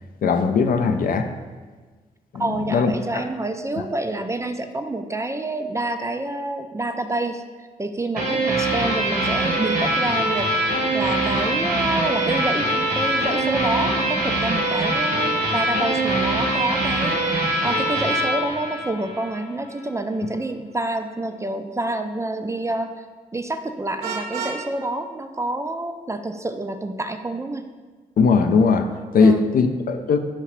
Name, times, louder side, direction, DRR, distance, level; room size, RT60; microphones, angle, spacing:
voice 1, 0.2-1.3 2.3-3.2 28.2-30.2, left 5 dB, 55° left, 7 dB, 0.4 m, -19 dB
voice 2, 2.4-10.5 10.9-17.2 17.6-23.1 23.3-27.7 29.2-29.5, right 2 dB, 15° right, 7 dB, 0.4 m, -28 dB
sound 1, 8.2-19.4, right 1 dB, 65° right, 1.0 m, -23 dB
Vehicle horn car horn honking, 24.0-24.6, right 5 dB, 90° right, 0.5 m, -29 dB
5.8 x 2.8 x 3.0 m, 1.4 s
supercardioid pair, 50°, 17 cm